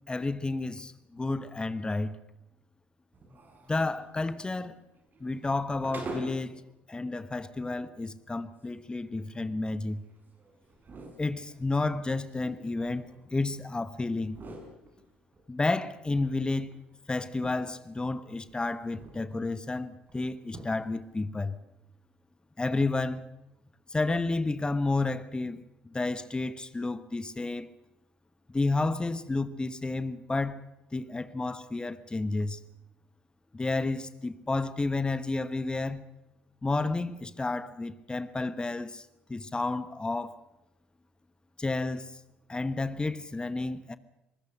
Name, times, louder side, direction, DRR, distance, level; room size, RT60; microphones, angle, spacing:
voice 1, 0.1-2.2 3.7-4.8 5.2-6.6 6.9-10.0 11.2-13.0 13.3-14.4 15.5-16.7 17.1-21.6 22.6-23.2 23.9-25.6 25.8-27.7 28.5-30.6 30.9-32.6 33.5-36.0 36.6-40.4 41.6-42.1 42.5-44.0, left 3 dB, 15° left, 1.2 m, -31 dB
sound 1, 3.1-6.6 7.0-7.1 7.7-7.8 8.3-13.7 14.1-15.4 15.8-17.9 18.2-19.3 19.6-19.7 20.1-20.2 20.4-21.0, right 2 dB, 35° right, 6.3 m, -47 dB
24.5 x 20.5 x 6.5 m
figure-of-eight pair, 55°, 6 cm